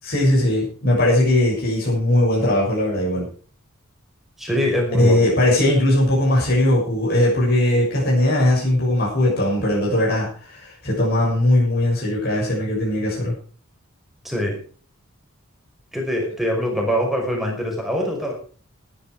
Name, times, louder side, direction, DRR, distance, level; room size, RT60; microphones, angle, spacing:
voice 1, 0.0-3.3 4.9-13.3, left 1 dB, 45° left, -4 dB, 6.8 m, -19 dB
voice 2, 4.4-5.3 14.2-14.6 15.9-18.3, equal, ahead, 0 dB, 5.4 m, -23 dB
18.5 x 10.0 x 4.9 m, 0.42 s
head